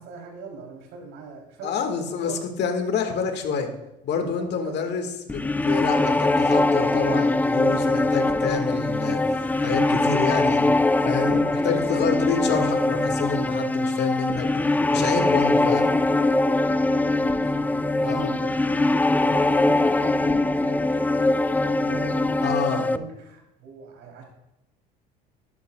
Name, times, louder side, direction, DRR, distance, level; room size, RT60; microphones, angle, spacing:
voice 1, 0.0-1.8 2.2-2.3 2.8-2.9 4.2-4.7 7.7-8.5 12.0-12.1 16.6-21.4 21.7-22.4 22.7-24.2, right 4 dB, 65° right, 1 dB, 3.3 m, -40 dB
voice 2, 1.6-2.3 2.6-3.7 4.0-10.7 11.0-14.6 14.9-15.9 18.0-18.3 22.4-22.8, left 6 dB, 55° left, 5 dB, 1.7 m, -28 dB
sound 1, 5.3-23.0, left 2 dB, 10° left, 0.3 m, -22 dB
12.5 x 9.3 x 2.3 m, 0.88 s
hypercardioid pair, 75°, 21 cm